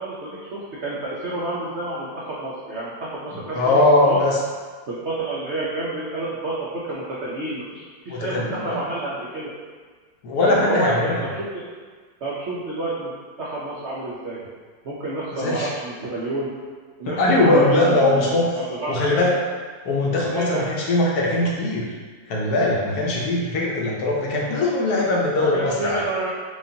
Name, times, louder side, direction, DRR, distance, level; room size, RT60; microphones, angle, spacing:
voice 1, 0.0-4.2 4.9-9.5 10.4-11.6 12.2-13.1 13.4-14.4 14.8-16.5 17.0-19.2 20.1-20.6 25.4-26.3, right 2 dB, 75° right, -6 dB, 0.6 m, -29 dB
voice 2, 3.5-4.4 8.1-8.8 10.2-11.2 15.3-15.7 17.1-18.6 18.9-19.4 19.8-21.9 22.3-26.0, left 2 dB, 70° left, -3 dB, 1.1 m, -20 dB
5.0 x 2.4 x 2.7 m, 1.5 s
omnidirectional pair, 1.9 m